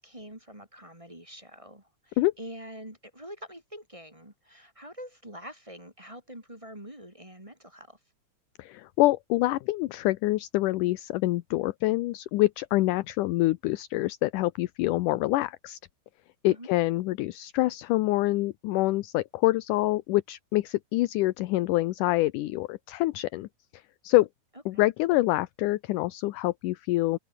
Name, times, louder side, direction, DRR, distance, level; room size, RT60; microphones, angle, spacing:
voice 1, 0.0-8.0 16.5-16.7 24.7-24.8, equal, 10° right, 3.3 m, -45 dB
voice 2, 8.6-15.8 16.4-23.5 24.0-24.3 24.7-27.2, left 18 dB, 75° left, 2.2 m, -26 dB
open air
omnidirectional pair, 3.9 m